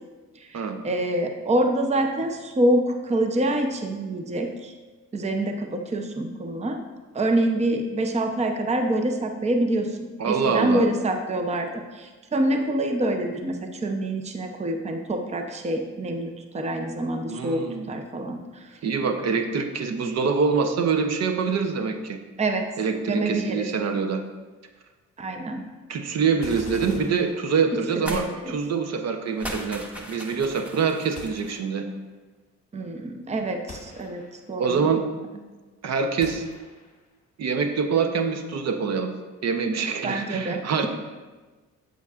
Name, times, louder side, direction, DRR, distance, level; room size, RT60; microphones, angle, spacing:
voice 1, 0.4-4.7 5.1-6.8 7.1-18.8 22.4-22.7 23.1-23.7 25.2-25.7 28.1-28.6 32.7-34.2 34.5-34.9 40.0-40.9, right 1 dB, 20° right, 5 dB, 0.7 m, -26 dB
voice 2, 10.2-10.9 17.3-17.9 18.8-22.2 22.8-24.2 25.9-31.9 34.6-35.0 35.8-36.4 37.4-39.1 39.4-40.9, right 5 dB, 60° right, 6 dB, 0.8 m, -25 dB
sound 1, 26.4-28.1 31.2-32.0 33.7-34.6 36.2-37.1, left 2 dB, 25° left, 1.3 m, -43 dB
sound 2, 28.0-28.3 28.6-28.7 29.3-31.6, left 1 dB, 5° right, 1.1 m, -37 dB
8.1 x 7.5 x 2.4 m, 1.3 s
cardioid pair, 90°, 30 cm